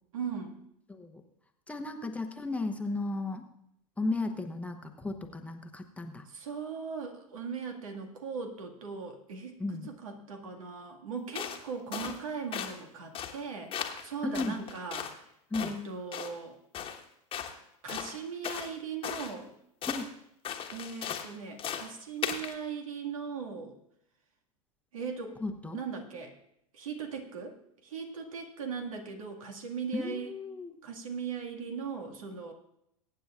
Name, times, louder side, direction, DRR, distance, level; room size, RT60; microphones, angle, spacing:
voice 1, 0.1-0.6 6.3-9.6 9.9-15.2 15.6-16.6 17.8-19.5 20.7-23.8 24.9-25.4 25.7-26.3 26.7-30.3 30.8-32.5, right 5 dB, 70° right, 3 dB, 2.0 m, -39 dB
voice 2, 0.9-1.2 1.7-3.5 4.0-6.3 9.6-9.9 14.2-14.6 15.5-15.7 19.8-20.1 25.4-25.8 29.9-30.8, left 3 dB, 5° left, 4 dB, 1.0 m, -35 dB
sound 1, 11.4-11.6 11.9-12.2 12.5-12.8 13.1-13.4 13.7-14.1 14.3-15.2 15.5-15.8 16.1-16.3 16.7-17.0 17.3-17.6 17.9-18.7 19.0-19.3 19.8-20.1 20.4-21.3 21.6-21.9 22.2-22.5, left 8 dB, 30° left, 1.4 m, -37 dB
22.5 x 9.2 x 2.5 m, 0.76 s
figure-of-eight pair, 90°, 18 cm